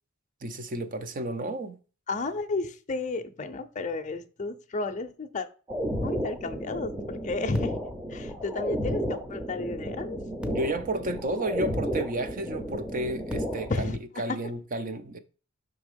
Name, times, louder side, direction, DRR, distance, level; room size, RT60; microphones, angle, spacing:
voice 1, 0.4-1.8 10.5-15.2, right 1 dB, 40° right, 0.6 m, -32 dB
voice 2, 2.1-5.5 6.0-7.8 8.1-10.2 13.7-14.0, left 3 dB, 35° left, 0.5 m, -32 dB
sound 1, 5.7-13.8, equal, 5° right, 0.7 m, -33 dB
5.9 x 3.5 x 5.1 m
head